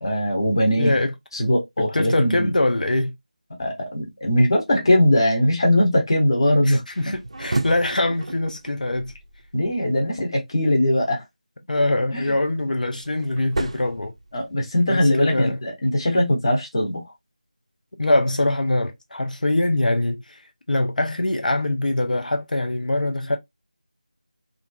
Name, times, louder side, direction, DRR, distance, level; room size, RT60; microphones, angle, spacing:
voice 1, 0.0-0.9 1.3-2.5 3.6-6.8 9.5-11.2 12.1-12.3 14.3-17.0, left 1 dB, 35° left, 0.9 m, -20 dB
voice 2, 0.8-1.1 1.8-3.1 6.7-9.1 11.7-14.1 14.9-15.6 18.0-20.4 20.7-23.4, left 2 dB, 75° left, 0.5 m, -23 dB
sound 1, 6.9-10.1 12.3-14.8, right 2 dB, 45° right, 0.4 m, -33 dB
2.8 x 2.5 x 2.2 m
figure-of-eight pair, 175°, 4 cm